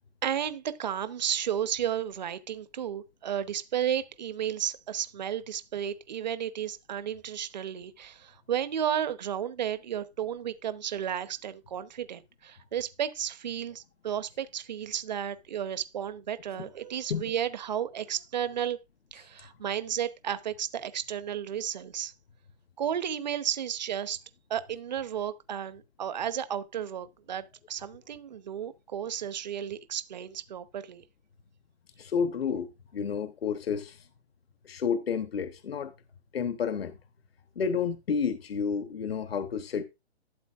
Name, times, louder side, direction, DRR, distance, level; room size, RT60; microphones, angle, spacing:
voice 1, 0.2-18.8 19.1-22.1 22.8-24.2 24.5-31.0, right 9 dB, 40° right, 0.9 m, -33 dB
voice 2, 32.0-34.0 34.6-35.9 36.3-37.0 37.6-39.8, left 6 dB, 65° left, 1.2 m, -30 dB
13.0 x 7.8 x 2.5 m
hypercardioid pair, 165°, 33 cm